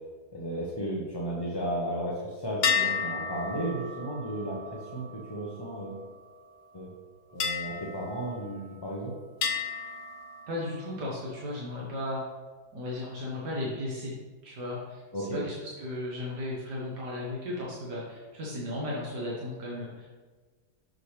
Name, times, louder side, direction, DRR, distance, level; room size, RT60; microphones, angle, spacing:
voice 1, 0.3-6.0 6.7-6.9 7.3-9.1 15.1-15.4, right 1 dB, 25° left, -5 dB, 0.6 m, -34 dB
sound 1, 2.6-6.3 7.4-8.9 9.4-11.1, left 6 dB, 65° left, 0.6 m, -33 dB
voice 2, 10.5-12.2 12.7-14.1 14.4-20.1, left 1 dB, 75° right, -5 dB, 1.8 m, -35 dB
6.4 x 6.3 x 3.2 m, 1.4 s
omnidirectional pair, 1.8 m